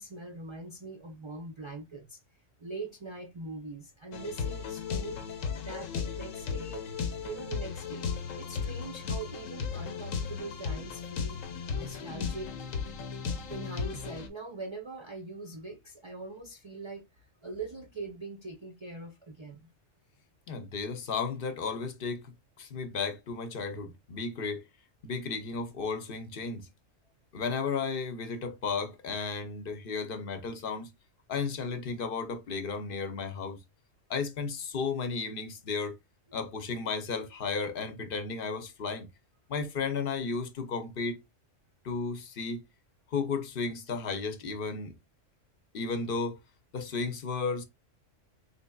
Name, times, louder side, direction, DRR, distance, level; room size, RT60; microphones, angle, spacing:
voice 1, 0.0-2.2 2.6-5.2 5.6-6.9 7.2-8.1 8.4-11.4 11.7-12.5 13.5-17.1 17.4-19.7 36.3-36.6, right 3 dB, 50° right, 0.3 m, -42 dB
sound 1, 4.1-14.3, left 6 dB, 85° left, 1.1 m, -35 dB
voice 2, 20.5-24.6 25.0-26.7 27.3-30.9 31.3-33.6 34.1-36.0 36.3-39.1 39.5-41.2 41.8-42.6 43.1-44.9 45.7-46.4 46.7-47.6, left 4 dB, 50° left, 0.8 m, -34 dB
4.2 x 3.1 x 2.2 m
omnidirectional pair, 1.3 m